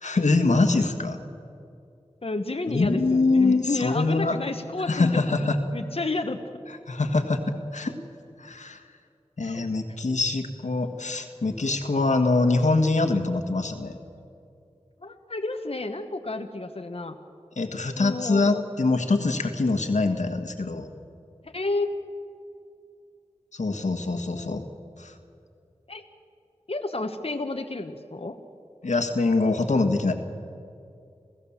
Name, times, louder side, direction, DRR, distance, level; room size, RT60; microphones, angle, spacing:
voice 1, 0.0-1.2 2.7-4.4 4.9-5.6 6.9-7.9 8.4-8.8 9.4-14.0 17.6-20.9 23.5-24.6 25.0-25.1 28.8-30.1, left 3 dB, 85° left, 6 dB, 1.7 m, -24 dB
voice 2, 2.2-6.4 9.4-9.7 15.0-17.2 18.0-18.6 21.4-21.9 23.7-24.0 24.3-24.6 25.9-26.0 26.7-28.4, left 2 dB, 55° left, 5 dB, 1.2 m, -31 dB
28.0 x 16.0 x 7.3 m, 2.5 s
wide cardioid pair, 50°, 12 cm